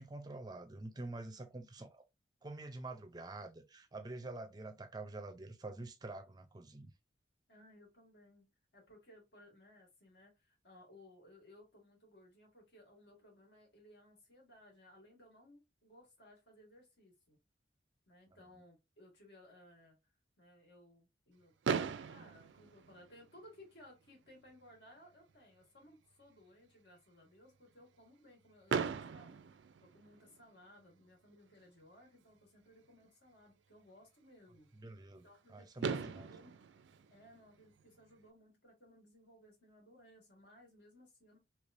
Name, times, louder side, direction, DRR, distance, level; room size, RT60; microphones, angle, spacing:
voice 1, 0.0-2.0 2.4-6.9 34.8-35.2 35.5-36.3, right 2 dB, 20° right, 0.5 m, -47 dB
voice 2, 7.5-8.5 8.7-17.4 18.1-20.0 20.4-21.5 22.1-29.4 29.8-34.7 35.2-36.6 37.1-41.4, left 1 dB, 70° left, 1.8 m, -61 dB
Fireworks, 21.6-23.7 24.5-24.6 24.8-25.0 25.3-25.4 28.7-30.5 32.2-32.3 35.3-35.4 35.8-38.1, right 6 dB, 80° right, 0.4 m, -39 dB
3.3 x 3.0 x 2.6 m
head